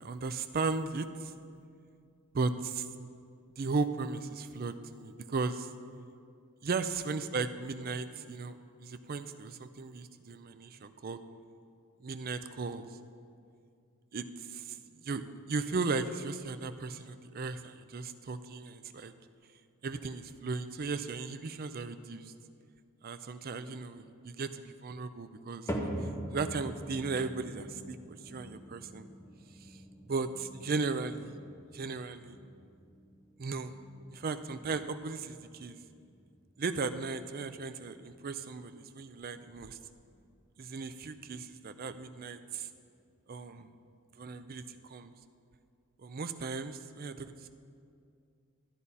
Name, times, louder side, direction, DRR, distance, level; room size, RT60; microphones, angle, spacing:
voice 1, 0.0-1.3 2.3-2.9 3.6-5.7 6.6-11.2 12.0-12.9 14.1-14.8 15.0-19.1 19.8-22.3 23.0-25.9 26.3-28.0 28.2-29.1 30.1-31.4 31.7-32.4 33.4-33.7 34.1-35.8 36.6-39.8 40.6-42.7 43.3-43.7 44.2-45.1 46.0-47.5, right 4 dB, 40° right, 10 dB, 0.4 m, -36 dB
sound 1, 25.7-42.0 42.3-42.8 43.4-43.5 44.3-44.4, equal, 15° left, 0.9 m, -45 dB
13.0 x 9.9 x 4.1 m, 2.4 s
head